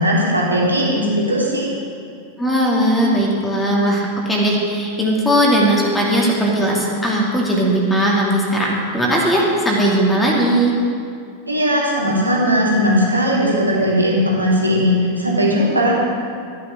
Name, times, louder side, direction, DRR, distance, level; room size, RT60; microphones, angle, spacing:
voice 1, 0.0-1.7 11.5-16.0, equal, 80° right, -4 dB, 2.9 m, -18 dB
voice 2, 2.4-10.7, right 1 dB, 10° left, -3 dB, 2.5 m, -18 dB
14.0 x 10.0 x 6.4 m, 2.3 s
figure-of-eight pair, 90°, 0 cm